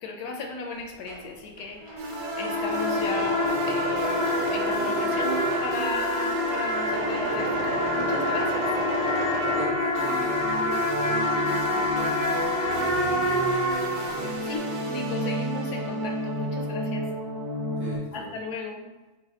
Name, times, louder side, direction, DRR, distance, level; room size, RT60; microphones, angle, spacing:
voice 1, 0.0-5.3 5.6-8.7 14.1-17.1 18.1-18.9, left 3 dB, 75° left, 2 dB, 1.0 m, -36 dB
Engine / Mechanisms, 0.8-10.4 10.8-13.1 13.4-14.1, right 2 dB, 80° right, 1.2 m, -33 dB
sound 1, 1.8-14.6, left 1 dB, 25° right, 0.7 m, -27 dB
sound 2, 2.0-18.0, right 1 dB, 60° right, 1.1 m, -33 dB
voice 2, 9.4-11.9 12.2-13.5 17.7-18.4, right 2 dB, 45° right, -8 dB, 1.1 m, -40 dB
4.0 x 2.2 x 4.0 m, 1.2 s
omnidirectional pair, 1.8 m